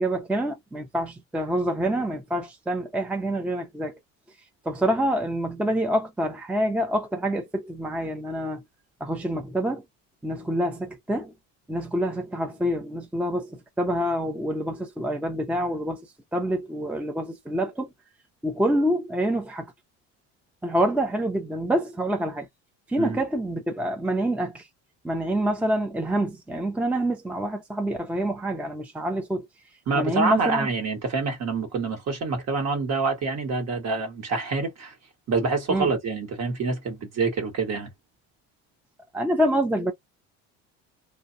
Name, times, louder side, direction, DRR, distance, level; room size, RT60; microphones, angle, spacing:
voice 1, 0.0-4.0 4.6-8.6 9.0-9.8 10.2-11.3 11.7-16.1 16.3-17.9 18.4-19.7 20.6-22.5 22.9-24.7 25.0-29.5 29.9-30.7 35.7-35.9 39.1-39.9, right 1 dB, 5° right, 0.5 m, -26 dB
voice 2, 29.9-34.9 35.3-37.9, right 4 dB, 50° right, 1.5 m, -26 dB
2.6 x 2.3 x 2.6 m
supercardioid pair, 100°, 34 cm